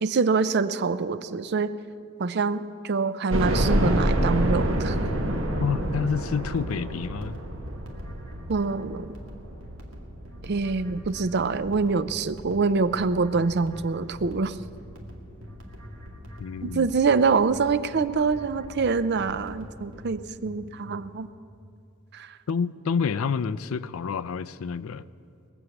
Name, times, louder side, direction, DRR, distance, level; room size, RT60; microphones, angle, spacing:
voice 1, 0.0-1.7 2.2-4.9 8.5-9.2 10.4-14.6 16.6-21.3 22.1-22.3, right 4 dB, 55° right, 14 dB, 0.5 m, -25 dB
sound 1, 3.3-12.2 12.7-12.8 13.2-13.3 14.5-14.6 14.8-14.9, right 1 dB, 70° right, 1.4 m, -28 dB
voice 2, 5.6-7.4 16.4-16.9 22.5-25.0, left 6 dB, 90° left, 15 dB, 0.4 m, -28 dB
sound 2, 6.4-20.0, equal, 85° right, 2.0 m, -47 dB
sound 3, 10.8-21.3, left 1 dB, 5° left, 0.7 m, -47 dB
20.5 x 7.1 x 8.1 m, 2.5 s
head